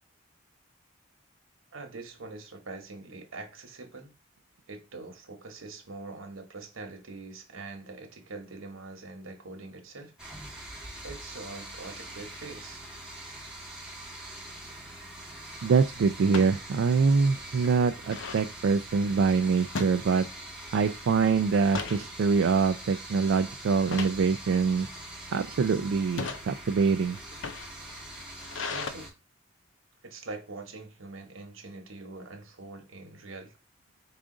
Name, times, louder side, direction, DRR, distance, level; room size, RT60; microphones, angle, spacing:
voice 1, 1.7-4.1 4.7-10.1 10.5-10.7 11.0-12.8 28.7-29.1 30.0-33.5, right 3 dB, 90° right, 1.2 m, -43 dB
sound 1, 10.2-29.1, right 1 dB, 5° right, 1.0 m, -43 dB
sound 2, 14.5-14.8 16.2-16.6 17.1-17.2 17.4-18.5 19.7-20.6 20.9-21.1 21.5-22.1 22.6-22.9 23.8-24.2 25.0-25.4 26.0-26.4 27.2-28.9, left 4 dB, 70° left, 0.6 m, -37 dB
voice 2, 15.6-20.3 20.7-24.9 25.3-27.2, right 5 dB, 75° right, 0.3 m, -24 dB
4.9 x 2.4 x 3.7 m
head